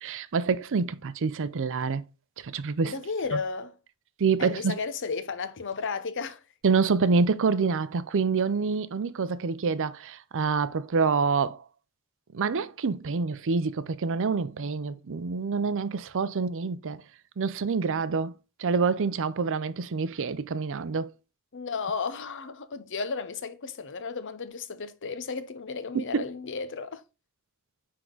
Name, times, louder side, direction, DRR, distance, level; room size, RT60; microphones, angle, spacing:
voice 1, 0.0-2.0 2.4-2.9 3.3-3.4 4.2-4.8 6.6-11.6 12.3-17.0 17.4-18.3 18.6-21.1 25.9-26.2, right 5 dB, 60° right, 0.5 m, -27 dB
voice 2, 2.8-3.8 4.4-6.4 21.5-27.0, left 5 dB, 55° left, 0.8 m, -33 dB
9.3 x 3.7 x 3.9 m
head